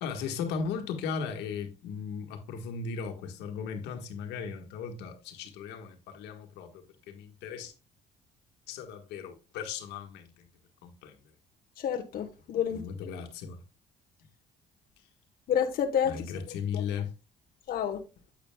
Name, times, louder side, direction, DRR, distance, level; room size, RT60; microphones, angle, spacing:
voice 1, 0.0-7.7 8.7-10.5 10.8-11.2 12.7-13.6 16.0-17.1, left 6 dB, 90° left, 1.6 m, -37 dB
voice 2, 11.8-12.8 15.5-16.2 16.7-16.8 17.7-18.0, left 8 dB, 60° left, 1.1 m, -29 dB
9.0 x 8.2 x 2.3 m
cardioid pair, 110°, 17 cm